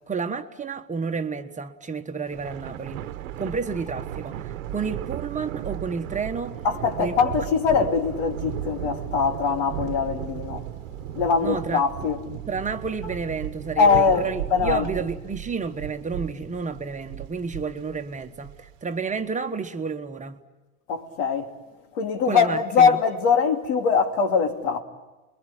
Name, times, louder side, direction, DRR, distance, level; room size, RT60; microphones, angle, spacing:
voice 1, 0.1-3.0 3.4-6.6 7.0-7.2 11.4-11.8 12.5-20.4 22.2-23.0, right 5 dB, 20° right, 1.2 m, -31 dB
Thunder, 2.3-18.9, right 12 dB, 85° right, 1.2 m, -35 dB
voice 2, 6.6-10.6 11.1-12.2 13.8-14.9 20.9-21.5 21.9-24.8, left 5 dB, 75° left, 3.1 m, -22 dB
29.0 x 22.5 x 9.0 m
supercardioid pair, 110°, 38 cm